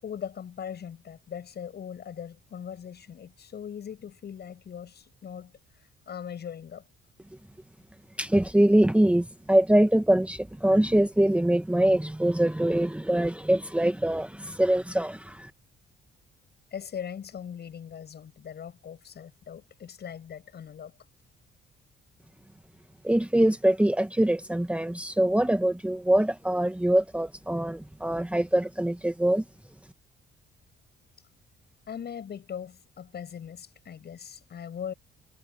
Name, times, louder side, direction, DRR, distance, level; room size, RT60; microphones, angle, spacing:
voice 1, 0.0-6.8 16.7-20.9 31.9-34.9, left 8 dB, 55° left, 7.5 m, -40 dB
voice 2, 8.2-15.5 23.0-29.4, right 1 dB, 5° right, 1.3 m, -23 dB
cardioid pair, 90°, 20 cm